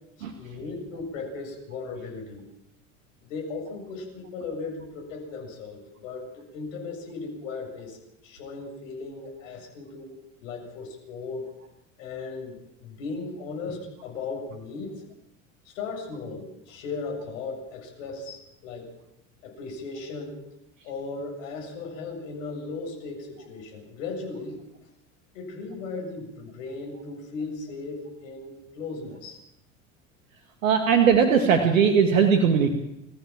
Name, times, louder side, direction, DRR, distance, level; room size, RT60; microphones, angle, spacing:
voice 1, 0.3-2.4 3.3-8.0 8.2-10.1 10.4-11.4 12.0-14.9 15.6-18.9 19.4-20.4 20.8-24.6 25.3-29.4, left 4 dB, 75° left, 1 dB, 7.4 m, -37 dB
voice 2, 30.6-32.7, right 6 dB, 85° right, 6 dB, 2.3 m, -19 dB
27.0 x 15.0 x 7.5 m, 0.84 s
hypercardioid pair, 75°, 39 cm